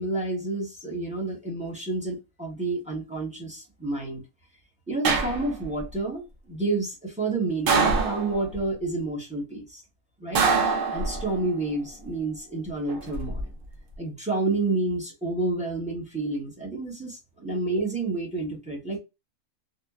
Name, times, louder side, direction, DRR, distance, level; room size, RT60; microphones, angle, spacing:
voice 1, 0.0-4.2 4.9-9.8 10.2-10.5 10.9-13.4 14.0-19.0, right 2 dB, 5° right, 0.8 m, -29 dB
sound 1, 5.0-5.8 7.7-8.6 10.3-11.5 12.9-13.4, right 4 dB, 60° right, 0.6 m, -24 dB
2.9 x 2.1 x 2.2 m
omnidirectional pair, 1.5 m